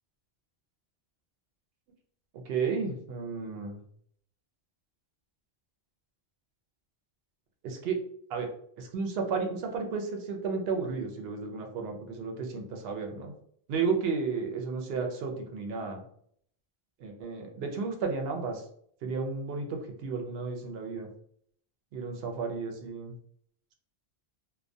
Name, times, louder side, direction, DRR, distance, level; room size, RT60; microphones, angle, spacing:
voice 1, 2.5-3.8 7.6-8.0 8.3-8.5 8.8-13.3 13.7-16.0 17.0-18.6 19.0-21.1 21.9-23.2, right 5 dB, 75° right, 3 dB, 0.8 m, -33 dB
2.2 x 2.1 x 2.5 m, 0.65 s
omnidirectional pair, 1.0 m